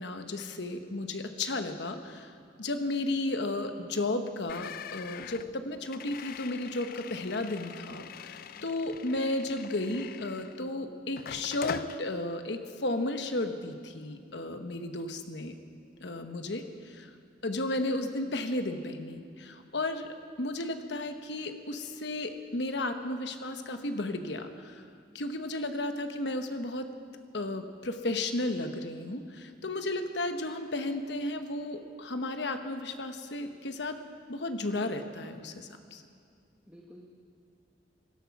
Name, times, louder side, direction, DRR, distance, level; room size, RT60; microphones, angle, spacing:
voice 1, 0.0-2.3 2.6-15.6 16.0-17.1 17.4-20.1 20.4-24.8 25.1-26.9 27.3-34.0 34.3-36.0, left 2 dB, 65° left, 7 dB, 1.1 m, -34 dB
sound 1, 4.5-10.7 11.2-12.0, left 8 dB, 50° left, 0.3 m, -43 dB
voice 2, 16.3-16.7 36.7-37.0, equal, 5° right, -2 dB, 1.1 m, -54 dB
17.0 x 12.5 x 5.9 m, 2.3 s
head